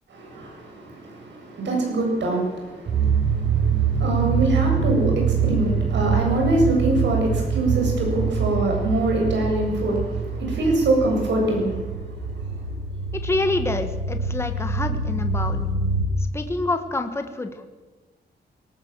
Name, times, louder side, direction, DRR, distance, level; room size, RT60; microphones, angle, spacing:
voice 1, 0.1-11.9, right 1 dB, 85° right, 1 dB, 7.8 m, -24 dB
sound 1, 2.9-16.0, right 5 dB, 70° right, 4.1 m, -25 dB
voice 2, 13.2-15.7 16.3-17.7, left 2 dB, 15° left, 7 dB, 1.4 m, -27 dB
22.5 x 18.0 x 7.5 m, 1.3 s
wide cardioid pair, 165°, 18 cm